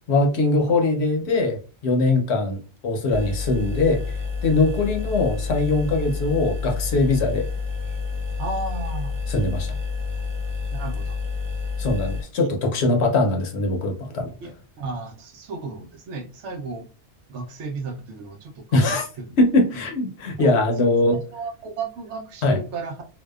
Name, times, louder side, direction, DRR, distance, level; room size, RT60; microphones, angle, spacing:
voice 1, 0.1-4.0 4.4-7.5 9.3-9.7 11.8-14.3 18.7-19.1 19.4-21.2 22.4-22.6, left 2 dB, 70° left, 0.9 m, -21 dB
sound 1, 3.1-12.2, left 5 dB, 25° right, 0.7 m, -29 dB
voice 2, 8.4-9.2 10.7-11.2 12.4-12.5 14.4-16.9 17.3-19.3 19.7-19.9 20.4-20.5 21.1-23.1, right 3 dB, 75° right, 0.9 m, -34 dB
2.7 x 2.1 x 2.2 m
omnidirectional pair, 1.2 m